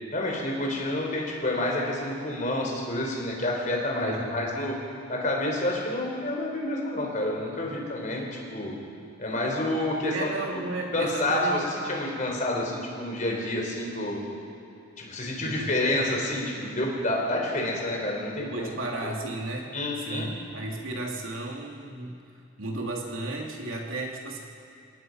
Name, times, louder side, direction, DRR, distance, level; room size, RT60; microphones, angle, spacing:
voice 1, 0.1-4.7 5.1-8.7 9.2-10.3 10.9-14.2 15.0-18.7 19.7-20.3, left 1 dB, 35° left, -1 dB, 4.3 m, -28 dB
voice 2, 4.0-4.5 10.1-11.6 15.4-15.7 18.4-22.2 22.6-24.4, right 2 dB, 80° right, 0 dB, 2.8 m, -34 dB
28.5 x 17.5 x 5.5 m, 2.6 s
head